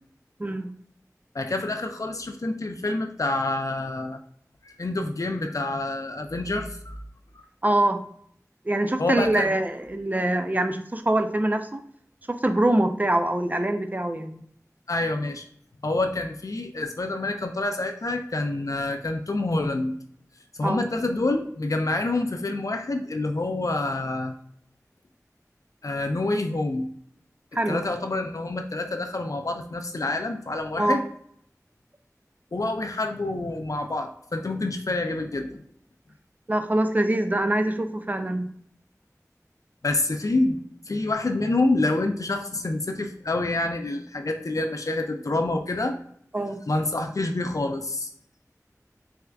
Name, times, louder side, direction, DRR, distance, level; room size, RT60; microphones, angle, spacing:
voice 1, 1.3-4.2 4.6-7.0 9.0-9.5 14.9-15.4 15.8-19.9 20.6-24.3 25.8-26.9 27.7-31.0 32.5-35.6 39.8-40.6 40.9-46.0 46.7-48.1, left 2 dB, 65° left, 5 dB, 0.4 m, -27 dB
voice 2, 7.6-8.0 8.6-11.8 12.3-14.4 20.6-20.8 27.5-27.8 30.8-31.0 36.5-38.5 46.3-46.6, right 1 dB, 30° right, 8 dB, 0.3 m, -24 dB
3.4 x 3.3 x 2.3 m, 0.65 s
wide cardioid pair, 45°, 6 cm